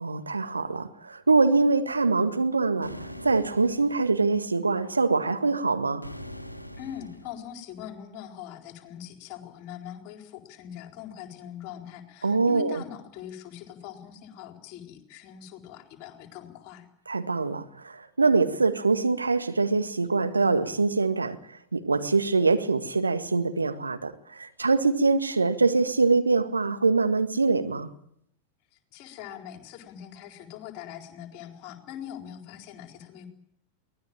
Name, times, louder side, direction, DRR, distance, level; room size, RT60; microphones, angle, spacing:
voice 1, 0.0-6.0 12.2-12.8 17.1-27.9, right 3 dB, 80° right, 1.8 m, -24 dB
sound 1, 2.8-4.2 6.0-7.5, left 1 dB, 90° left, 1.6 m, -42 dB
voice 2, 6.8-16.9 28.7-33.3, left 10 dB, 45° left, 4.2 m, -42 dB
23.5 x 18.5 x 8.9 m
figure-of-eight pair, 90°, 0 cm